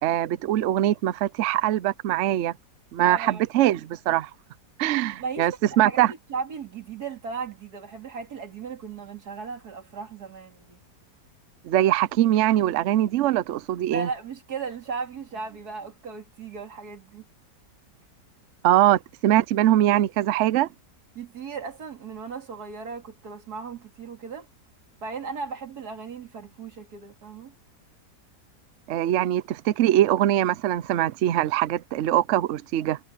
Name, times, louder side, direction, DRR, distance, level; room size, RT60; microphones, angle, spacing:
voice 1, 0.0-2.5 2.9-3.8 4.1-4.3 4.8-6.1 11.6-14.1 18.6-20.7 28.9-33.0, right 13 dB, 75° right, 0.6 m, -22 dB
voice 2, 3.0-3.8 5.1-10.8 13.9-17.2 21.1-24.5 25.0-27.5, right 5 dB, 60° right, 2.8 m, -36 dB
omnidirectional pair, 1.9 m